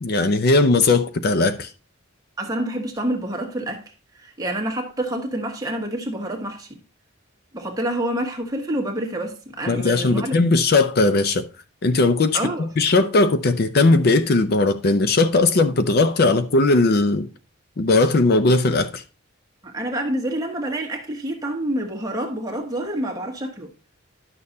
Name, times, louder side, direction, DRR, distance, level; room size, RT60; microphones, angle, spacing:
voice 1, 0.0-1.7 9.7-11.5 11.8-17.3 17.8-19.0, left 3 dB, 50° left, 0.5 m, -18 dB
voice 2, 2.4-3.8 4.1-6.7 7.5-10.3 12.3-12.7 19.6-23.7, right 1 dB, 20° right, 1.3 m, -27 dB
11.0 x 6.6 x 2.7 m
head